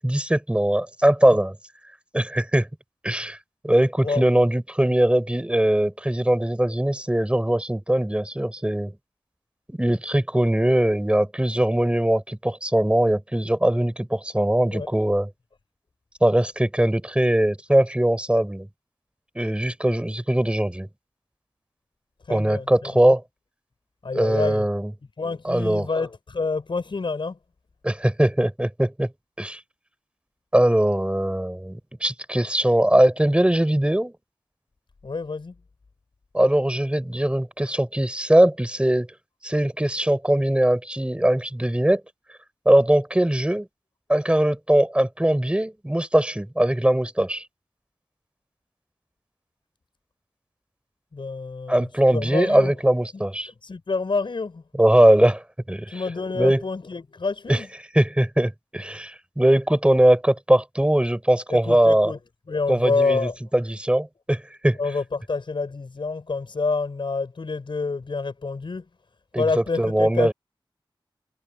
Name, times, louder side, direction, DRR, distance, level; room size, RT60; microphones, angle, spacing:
voice 1, 0.0-1.5 2.1-2.7 3.0-3.4 3.6-8.9 9.7-15.3 16.2-18.7 19.3-20.9 22.3-23.2 24.1-24.9 25.4-25.9 27.8-29.1 29.4-29.6 30.5-34.1 36.3-39.1 39.4-42.0 42.6-43.7 44.1-47.4 51.7-53.5 54.7-56.0 56.3-56.6 57.5-57.6 57.9-62.1 62.7-64.8 69.3-69.4 69.8-70.3, right 1 dB, 10° right, 6.3 m, -21 dB
voice 2, 22.2-23.1 24.0-24.7 25.2-27.4 35.0-35.5 51.1-52.7 53.5-54.6 55.9-57.7 61.5-62.2 62.5-63.4 64.8-68.8 69.4-70.3, left 4 dB, 65° left, 6.7 m, -28 dB
wide cardioid pair, 75°, 9 cm